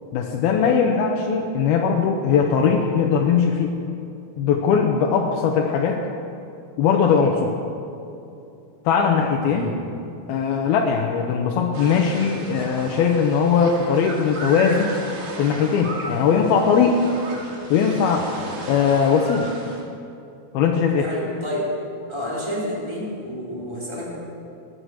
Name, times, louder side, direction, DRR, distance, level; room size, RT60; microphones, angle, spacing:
voice 1, 0.1-3.8 4.4-6.0 6.8-7.5 8.9-9.7 10.3-15.0 15.4-17.0 17.7-18.3 18.7-19.5 20.5-21.1, left 6 dB, 90° left, 0 dB, 2.9 m, -20 dB
sound 1, 11.7-19.8, right 2 dB, 65° right, 3.9 m, -35 dB
voice 2, 21.0-21.7 22.1-24.2, equal, 5° left, -5 dB, 3.2 m, -29 dB
21.5 x 9.7 x 6.4 m, 2.7 s
omnidirectional pair, 4.4 m